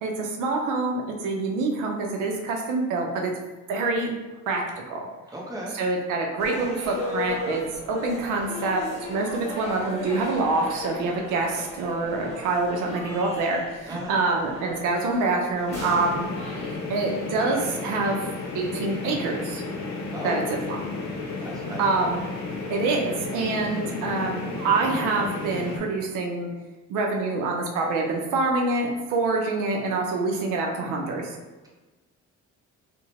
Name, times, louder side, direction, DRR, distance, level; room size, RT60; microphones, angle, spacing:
voice 1, 0.0-3.3 3.7-4.2 4.5-4.6 4.9-5.0 5.7-7.6 7.9-8.8 9.1-16.3 16.9-18.2 18.5-19.6 20.2-20.4 21.8-22.2 22.7-26.5 26.9-31.3, right 3 dB, 90° right, 1 dB, 0.5 m, -26 dB
voice 2, 5.3-5.8 13.9-14.2 20.1-20.5 21.4-21.9 31.6-31.7, equal, 10° right, -3 dB, 0.7 m, -36 dB
sound 1, 6.4-16.8, left 2 dB, 20° left, 1.1 m, -37 dB
sound 2, 15.7-25.8, left 3 dB, 65° left, 0.6 m, -33 dB
2.7 x 2.1 x 2.9 m, 1.2 s
cardioid pair, 90°, 30 cm